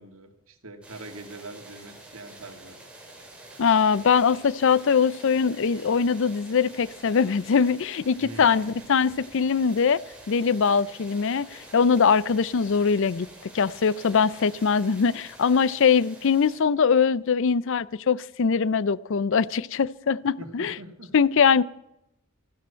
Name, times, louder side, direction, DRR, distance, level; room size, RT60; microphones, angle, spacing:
voice 1, 0.0-2.8 8.2-9.4 20.4-21.1, right 2 dB, 70° right, 2.0 m, -44 dB
sound 1, 0.8-16.6, right 2 dB, 5° right, 3.5 m, -47 dB
voice 2, 3.6-10.0 10.3-20.7 21.1-21.6, left 6 dB, 60° left, 0.5 m, -22 dB
15.0 x 12.5 x 5.7 m
head